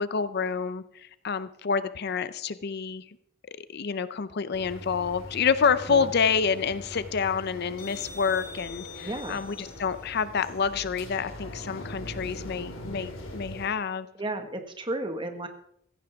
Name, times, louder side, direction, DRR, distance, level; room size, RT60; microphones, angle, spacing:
voice 1, 0.0-3.0 3.5-14.1, left 6 dB, 50° left, 14 dB, 0.5 m, -28 dB
sound 1, 4.5-13.7, left 1 dB, 80° left, 2.8 m, -41 dB
voice 2, 9.0-9.4 14.2-15.5, right 2 dB, 25° right, 6 dB, 1.5 m, -33 dB
15.5 x 15.5 x 3.5 m, 0.69 s
head